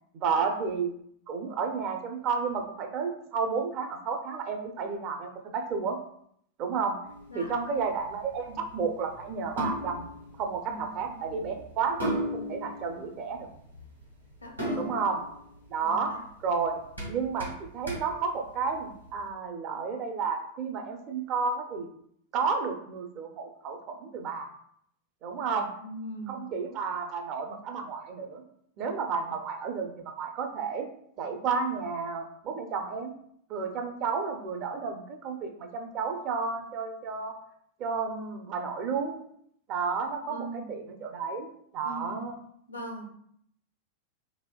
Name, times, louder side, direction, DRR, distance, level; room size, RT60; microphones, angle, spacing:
voice 1, 0.1-0.9 1.3-6.0 6.6-7.0 7.3-10.1 10.4-13.5 14.8-15.2 15.7-16.1 16.4-16.8 17.1-21.9 22.3-24.5 25.2-25.7 26.3-28.4 28.8-30.9 31.2-33.1 33.5-37.3 37.8-39.2 39.7-41.5 41.7-42.4, right 5 dB, 40° right, 4 dB, 0.5 m, -31 dB
sound 1, 7.0-19.2, equal, 90° right, 1.4 m, -38 dB
voice 2, 10.7-11.6 14.4-15.0 15.8-16.2 25.4-26.4 40.2-40.7 41.8-42.3 42.7-43.0, right 1 dB, 85° left, 1 dB, 0.7 m, -41 dB
4.1 x 2.7 x 2.2 m, 0.68 s
figure-of-eight pair, 90°, 0 cm